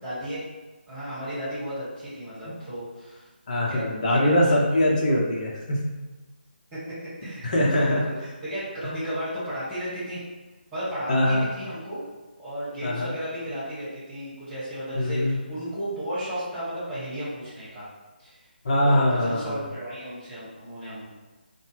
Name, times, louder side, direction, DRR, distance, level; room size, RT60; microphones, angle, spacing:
voice 1, 0.0-0.4 0.9-3.3 3.7-3.8 4.1-4.5 5.1-5.2 6.7-10.2 10.7-12.0 12.4-17.9 18.2-18.4 18.8-21.1, equal, 15° right, -12 dB, 1.4 m, -34 dB
voice 2, 3.5-5.8 7.4-8.0 11.1-11.5 12.8-13.1 14.9-15.4 18.6-19.6, left 1 dB, 45° left, -3 dB, 0.9 m, -22 dB
4.2 x 2.2 x 3.2 m, 1.2 s
figure-of-eight pair, 150°, 6 cm